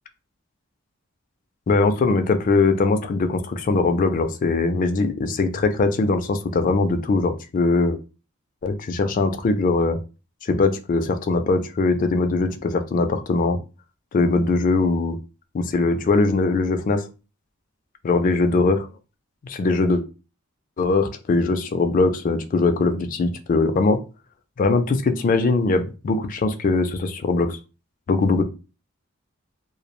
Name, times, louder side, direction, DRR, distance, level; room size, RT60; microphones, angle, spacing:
voice 1, 1.7-8.0 8.6-10.0 10.4-13.6 14.1-15.2 15.5-17.0 18.0-18.9 19.4-20.0 20.8-24.0 24.6-27.6 28.1-28.4, left 3 dB, 40° left, 8 dB, 0.3 m, -21 dB
2.2 x 2.0 x 2.9 m, 0.32 s
head